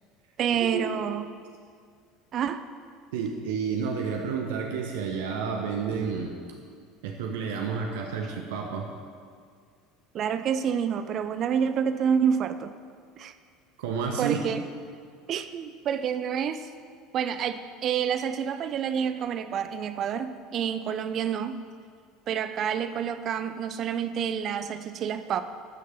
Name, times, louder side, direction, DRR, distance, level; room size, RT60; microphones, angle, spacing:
voice 1, 0.4-1.3 2.3-2.6 10.1-12.7 13.2-13.3 14.2-14.6 15.3-16.7 17.1-21.6 22.3-25.4, right 8 dB, 45° right, 10 dB, 0.7 m, -28 dB
voice 2, 3.1-6.4 7.0-8.9 13.8-14.4, right 6 dB, 70° right, 2 dB, 1.2 m, -30 dB
13.5 x 6.5 x 6.8 m, 2.1 s
figure-of-eight pair, 70°, 0 cm